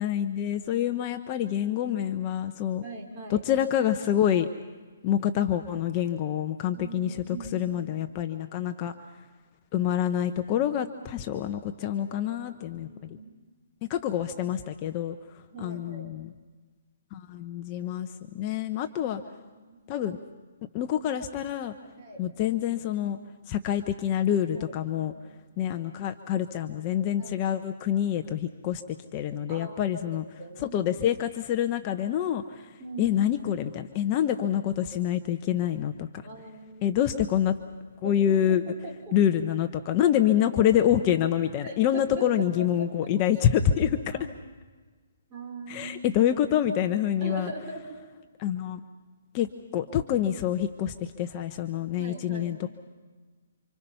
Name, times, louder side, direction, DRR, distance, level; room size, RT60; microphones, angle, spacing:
voice 1, 0.0-2.8 3.3-4.5 5.0-7.2 7.5-8.9 9.7-12.9 13.8-16.3 17.1-19.2 19.9-20.2 20.7-21.7 22.2-23.2 23.5-25.1 25.6-30.2 30.6-36.1 36.8-37.6 38.0-38.6 39.1-44.2 45.7-47.5 48.4-48.8 49.3-52.7, left 10 dB, 25° left, 7 dB, 0.9 m, -27 dB
voice 2, 1.4-1.8 2.8-3.4 6.7-7.7 11.8-12.3 12.7-13.3 15.5-16.1 19.1-19.8 22.0-22.2 24.5-25.2 27.2-27.5 29.5-30.8 32.8-33.2 36.2-37.0 38.0-39.2 40.6-40.7 41.6-42.9 43.7-44.3 45.3-46.2 47.2-48.0 52.0-52.7, right 2 dB, 25° right, -1 dB, 4.8 m, -42 dB
28.5 x 26.5 x 5.6 m, 1.4 s
hypercardioid pair, 160°, 0 cm